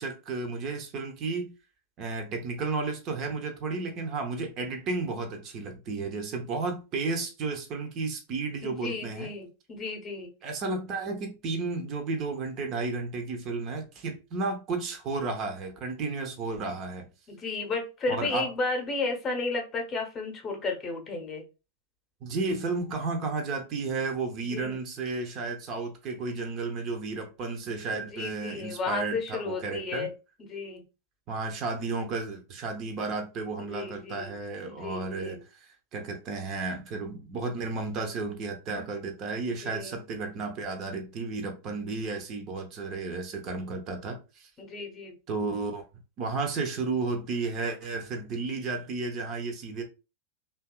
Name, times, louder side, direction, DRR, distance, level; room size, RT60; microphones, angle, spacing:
voice 1, 0.0-1.5 2.0-9.3 10.4-17.1 18.1-18.5 22.2-30.1 31.3-44.5 45.3-45.8 46.2-49.8, right 3 dB, 35° right, 0.5 m, -33 dB
voice 2, 8.6-10.3 17.3-21.4 24.5-24.8 27.9-30.1 30.4-30.8 33.6-34.3 34.7-35.4 39.5-40.0 44.6-45.2, left 3 dB, 25° left, 0.7 m, -33 dB
2.7 x 2.3 x 2.2 m
figure-of-eight pair, 90°, 0 cm